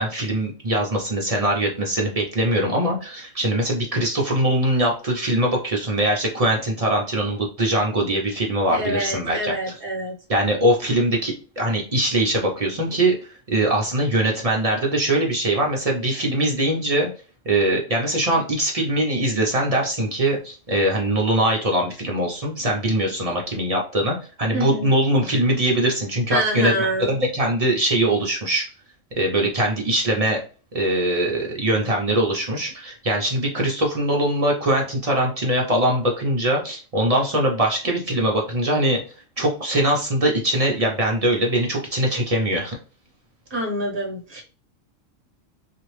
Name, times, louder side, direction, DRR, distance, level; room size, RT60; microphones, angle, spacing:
voice 1, 0.0-9.5 10.3-17.1 17.5-28.7 29.2-30.4 30.7-39.0 39.4-42.8, right 1 dB, 40° right, -1 dB, 0.5 m, -22 dB
voice 2, 8.7-10.2 24.5-24.9 26.3-27.1 43.5-44.4, right 1 dB, 25° right, -1 dB, 0.9 m, -26 dB
2.9 x 2.5 x 3.1 m, 0.36 s
omnidirectional pair, 1.3 m